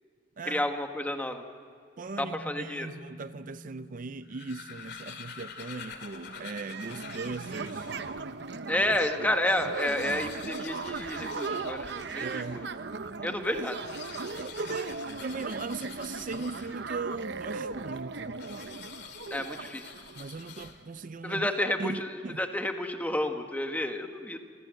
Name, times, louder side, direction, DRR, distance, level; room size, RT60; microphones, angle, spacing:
voice 1, 0.5-1.4 2.2-2.9 8.7-12.3 12.5-12.7 13.2-13.7 19.3-19.9 21.2-22.1 22.4-24.4, left 1 dB, 10° left, 1.7 m, -30 dB
sound 1, 2.0-6.3, left 1 dB, 30° left, 2.3 m, -51 dB
voice 2, 2.0-7.9 12.2-12.7 13.5-13.7 14.3-18.4 20.1-21.5 21.8-22.4, right 3 dB, 45° right, 0.5 m, -38 dB
sound 2, 4.1-8.3 8.8-8.9 9.1-9.2 9.5-12.7 13.6-17.1 18.4-21.1, left 7 dB, 65° left, 2.5 m, -47 dB
sound 3, 6.1-20.7, right 4 dB, 65° right, 0.9 m, -38 dB
28.0 x 20.5 x 7.8 m
head